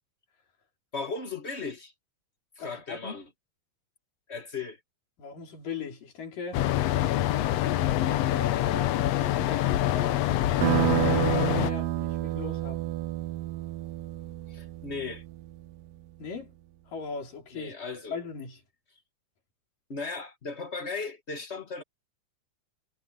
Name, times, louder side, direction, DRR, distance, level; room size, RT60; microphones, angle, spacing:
voice 1, 0.9-1.9 2.6-3.2 4.3-4.8 14.5-15.2 17.5-18.1 19.9-21.8, left 4 dB, 40° left, 0.9 m, -36 dB
voice 2, 2.6-3.2 5.2-6.7 7.9-13.0 16.2-16.5 16.9-17.7 18.1-18.6, left 5 dB, 90° left, 5.9 m, -39 dB
sound 1, 6.5-11.7, left 14 dB, 70° left, 1.6 m, -25 dB
sound 2, 10.6-15.7, right 16 dB, 85° right, 2.5 m, -29 dB
omnidirectional pair, 3.7 m